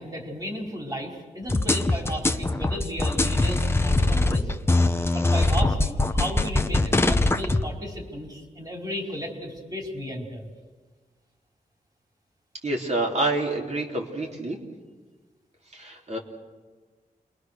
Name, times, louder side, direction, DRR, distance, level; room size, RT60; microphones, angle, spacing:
voice 1, 0.0-4.5 5.1-10.5, equal, 25° right, 1 dB, 4.5 m, -34 dB
sound 1, 1.5-7.6, left 2 dB, 15° left, 1.0 m, -22 dB
voice 2, 12.6-14.6 15.7-16.2, right 2 dB, 45° right, 0 dB, 3.7 m, -27 dB
29.0 x 22.5 x 6.6 m, 1.4 s
wide cardioid pair, 125°, 16 cm